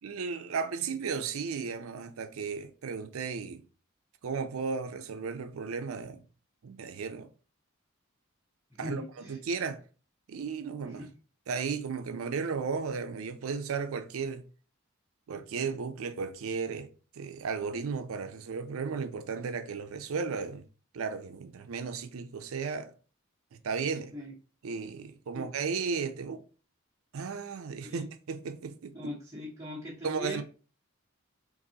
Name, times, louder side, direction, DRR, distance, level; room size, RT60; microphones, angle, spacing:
voice 1, 0.0-3.6 4.2-6.2 6.6-7.3 8.8-9.0 9.3-9.8 10.3-11.0 11.5-14.5 15.3-20.6 20.9-22.9 23.5-24.1 24.6-26.4 27.1-28.9 30.0-30.4, right 5 dB, 80° right, 0.5 m, -35 dB
voice 2, 8.8-9.4 10.8-11.1 24.1-24.4 25.3-25.5 27.8-28.0 28.9-30.4, left 1 dB, 15° right, 0.9 m, -40 dB
4.0 x 2.6 x 2.8 m
head